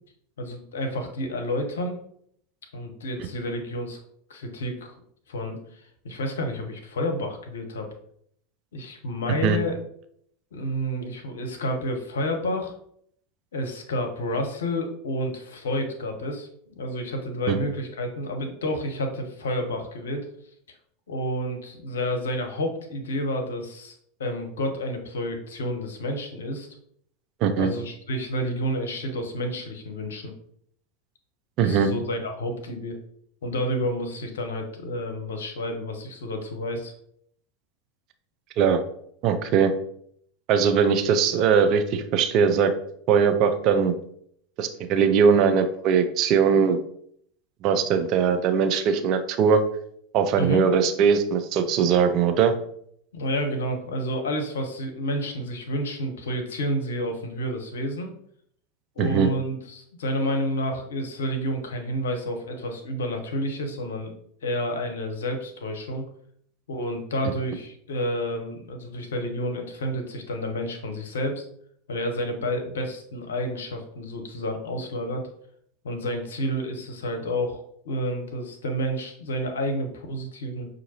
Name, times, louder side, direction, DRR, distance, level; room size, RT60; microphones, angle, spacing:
voice 1, 0.4-2.0 2.7-4.0 4.3-4.9 5.3-7.9 8.7-9.8 10.5-12.7 13.5-20.3 21.1-23.9 24.2-26.7 27.6-30.3 31.6-33.0 33.4-36.9 50.4-50.6 53.1-58.1 59.0-64.1 64.4-66.0 66.7-71.4 71.9-75.3 75.8-80.7, equal, 75° left, 5 dB, 0.7 m, -30 dB
voice 2, 31.6-31.9 38.6-38.8 39.2-39.7 40.5-42.7 43.1-43.9 44.6-46.8 47.6-49.6 50.1-52.6 59.0-59.3, right 6 dB, 45° right, 8 dB, 0.5 m, -20 dB
5.7 x 2.6 x 2.8 m, 0.68 s
figure-of-eight pair, 80°, 0 cm